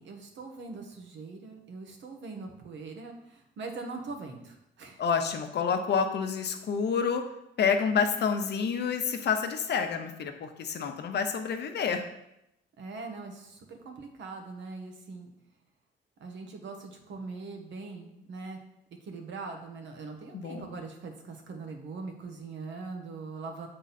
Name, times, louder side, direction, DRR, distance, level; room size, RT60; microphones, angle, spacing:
voice 1, 0.0-5.0 12.8-15.3 16.2-18.6 19.0-23.7, right 3 dB, 70° right, 4 dB, 1.2 m, -42 dB
voice 2, 5.0-7.2 7.6-12.0 20.3-20.7, left 6 dB, 60° left, 6 dB, 0.9 m, -28 dB
8.0 x 3.8 x 4.2 m, 0.83 s
cardioid pair, 90°, 20 cm